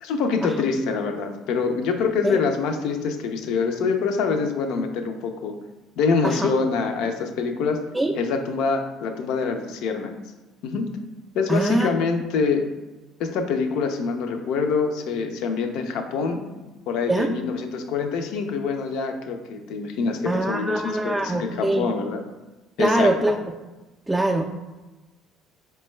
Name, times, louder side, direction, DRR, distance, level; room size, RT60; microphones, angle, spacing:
voice 1, 0.0-5.6 6.0-7.8 8.1-10.1 10.6-10.9 11.3-12.7 13.2-22.2 22.8-23.1, left 5 dB, 70° left, 5 dB, 0.4 m, -25 dB
voice 2, 11.5-11.9 17.1-17.3 20.3-21.9 22.8-23.4 24.1-24.5, right 2 dB, 10° right, 0 dB, 0.3 m, -23 dB
4.4 x 2.2 x 3.1 m, 1.1 s
hypercardioid pair, 70°, 0 cm